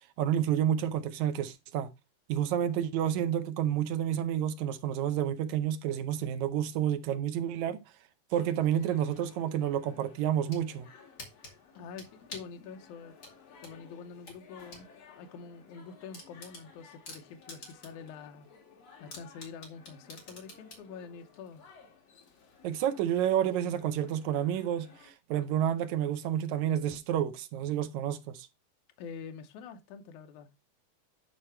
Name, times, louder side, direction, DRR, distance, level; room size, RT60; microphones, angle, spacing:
voice 1, 0.2-1.9 2.3-7.8 8.3-10.9 22.6-28.5, right 10 dB, 75° right, 2.0 m, -30 dB
sound 1, 8.3-25.1, left 5 dB, 60° left, 2.9 m, -57 dB
sound 2, 10.2-10.7 11.2-12.6 13.2-14.9 15.2-15.3 15.7-15.8 16.1-18.1 18.4-18.5 19.1-20.9, left 2 dB, 35° left, 3.0 m, -47 dB
voice 2, 11.8-13.1 13.6-14.9 15.2-18.5 19.0-21.6 29.0-30.5, left 6 dB, 75° left, 2.3 m, -46 dB
10.5 x 4.6 x 4.3 m
omnidirectional pair, 3.5 m